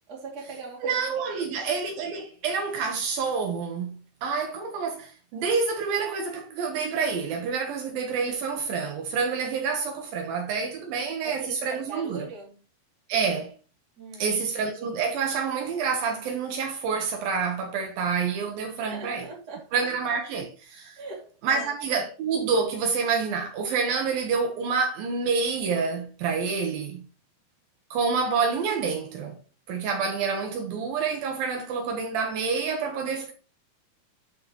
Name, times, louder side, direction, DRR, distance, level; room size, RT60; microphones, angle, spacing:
voice 1, 0.1-1.6 11.2-12.6 14.0-14.3 18.9-19.7 21.0-21.7, right 4 dB, 30° right, 2.4 m, -41 dB
voice 2, 0.8-12.3 13.1-13.5 14.2-19.2 19.7-21.0 21.4-27.0 27.9-29.4 29.7-33.3, right 5 dB, 75° right, 2.7 m, -28 dB
11.5 x 4.5 x 2.9 m
omnidirectional pair, 4.4 m